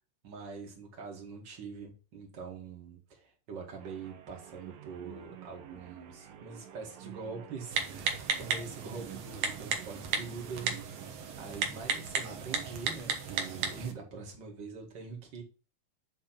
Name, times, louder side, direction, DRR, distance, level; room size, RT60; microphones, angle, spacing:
voice 1, 0.2-10.8 11.4-15.4, right 5 dB, 40° right, 1 dB, 2.1 m, -44 dB
sound 1, 3.7-11.2, right 11 dB, 90° right, 2.7 m, -51 dB
Typing, 7.7-13.9, right 5 dB, 60° right, 1.9 m, -35 dB
8.7 x 3.6 x 5.9 m, 0.35 s
omnidirectional pair, 3.9 m